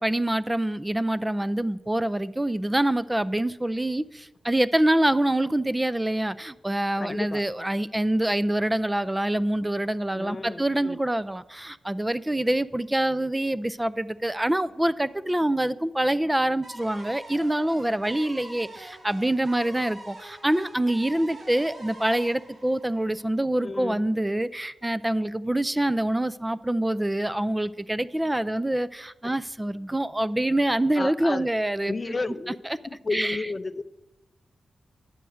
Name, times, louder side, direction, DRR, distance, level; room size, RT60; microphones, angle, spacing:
voice 1, 0.0-32.1 33.1-33.4, right 1 dB, 15° right, 0.4 m, -25 dB
voice 2, 7.0-7.5 10.1-11.0 23.6-24.1 29.2-29.4 31.0-31.5 31.8-32.6 32.8-33.8, left 3 dB, 45° left, 0.5 m, -32 dB
sound 1, 16.6-23.6, right 1 dB, 65° right, 3.0 m, -45 dB
9.9 x 6.6 x 6.4 m
supercardioid pair, 45°, 0 cm